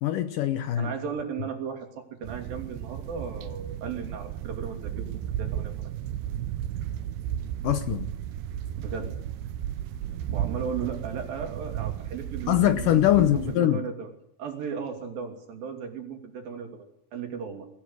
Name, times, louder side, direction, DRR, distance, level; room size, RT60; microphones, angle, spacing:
voice 1, 0.0-0.9 7.6-8.1 12.5-13.8, left 12 dB, 70° left, 2.3 m, -23 dB
voice 2, 0.8-5.1 5.4-5.9 8.8-9.1 10.3-14.1 14.4-16.9 17.1-17.7, right 6 dB, 65° right, 4.6 m, -36 dB
sound 1, 2.2-13.6, right 11 dB, 85° right, 2.9 m, -34 dB
22.5 x 16.0 x 8.3 m
omnidirectional pair, 4.5 m